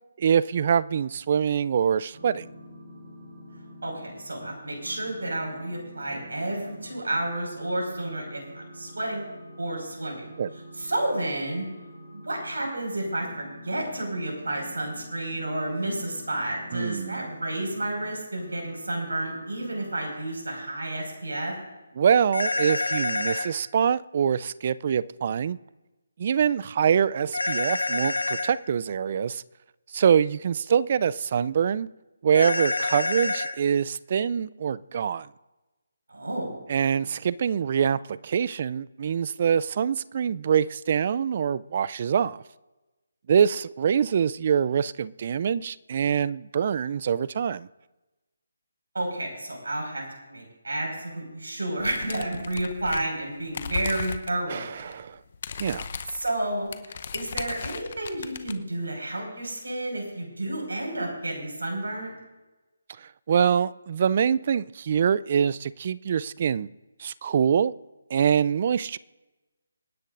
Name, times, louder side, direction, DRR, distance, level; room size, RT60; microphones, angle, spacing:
voice 1, 0.2-2.5 10.4-10.5 16.7-17.2 22.0-25.6 26.2-29.4 29.9-31.9 32.2-35.3 36.7-42.4 43.3-47.7 54.5-55.2 55.6-55.9 63.0-66.7 67.0-67.7 68.1-69.0, right 7 dB, 45° right, 0.4 m, -24 dB
sound 1, 2.1-7.2 7.5-9.9 10.2-12.6 13.0-18.1 18.4-20.2, equal, 65° right, 4.2 m, -46 dB
voice 2, 3.8-9.3 9.6-10.2 10.8-11.7 12.1-21.5 36.1-36.5 48.9-50.0 50.3-55.0 56.1-62.2, right 1 dB, 80° right, 5.2 m, -31 dB
sound 2, 22.3-23.5 27.3-28.5 32.3-33.5, left 2 dB, 90° left, 1.5 m, -27 dB
sound 3, 51.8-53.2 53.5-54.4 54.7-54.9 55.2-58.5, left 6 dB, 50° left, 0.8 m, -36 dB
26.5 x 10.5 x 2.6 m
figure-of-eight pair, 155°, 0 cm